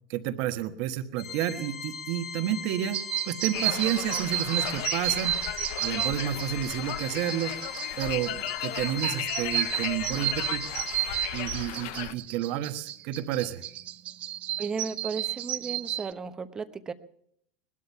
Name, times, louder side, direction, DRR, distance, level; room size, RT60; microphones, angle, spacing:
voice 1, 0.1-5.4 5.8-7.6 8.0-10.7 11.3-13.6, right 11 dB, 60° right, 9 dB, 1.3 m, -30 dB
Organ, 1.2-11.8, left 6 dB, 85° left, 2.9 m, -39 dB
sound 1, 2.9-16.1, right 13 dB, 45° right, 0.6 m, -32 dB
Conversation, 3.5-12.1, left 15 dB, 65° left, 0.6 m, -36 dB
voice 2, 14.6-16.9, right 5 dB, 20° right, 10 dB, 1.0 m, -35 dB
20.0 x 12.5 x 5.7 m, 0.69 s
supercardioid pair, 130°, 3 cm